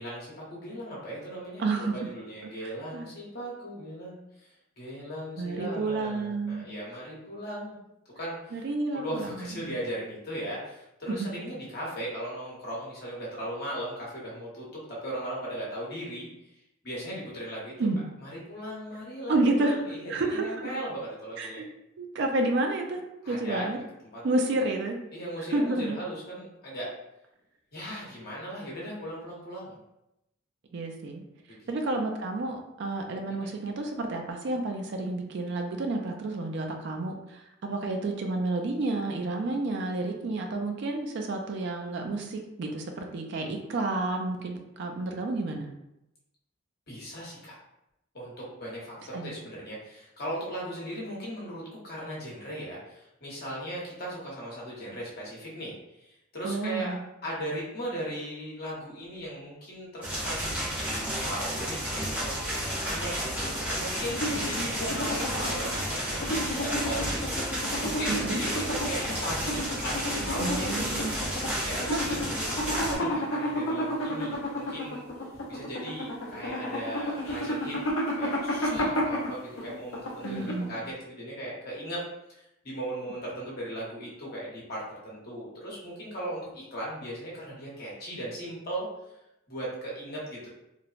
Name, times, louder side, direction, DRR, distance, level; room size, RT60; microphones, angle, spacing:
voice 1, 0.0-7.8 8.1-8.6 8.9-16.3 16.8-17.9 18.2-21.6 23.2-23.7 24.0-24.5 25.1-26.9 27.7-29.8 31.5-32.0 33.2-33.5 46.9-47.5 48.1-60.5 61.2-67.7 68.0-72.2 72.7-75.0 75.5-77.8 78.2-82.0 82.3-88.9 89.5-90.5, right 1 dB, 50° left, -5 dB, 1.0 m, -38 dB
voice 2, 1.6-2.1 2.4-2.5 2.9-3.1 5.4-6.7 8.5-9.7 11.1-11.3 17.8-18.0 19.3-19.8 20.1-20.8 21.4-21.6 22.0-23.0 23.3-23.8 24.2-25.0 25.5-26.0 30.7-31.2 31.7-45.7 49.1-49.3 56.4-57.0 68.1-68.4 70.4-71.2 71.8-72.2 80.2-80.7, right 2 dB, 60° right, 3 dB, 0.4 m, -30 dB
sound 1, 60.0-73.0, equal, 10° right, 0.7 m, -32 dB
sound 2, 64.0-80.9, equal, 75° left, 0.6 m, -32 dB
3.1 x 2.0 x 2.4 m, 0.87 s
head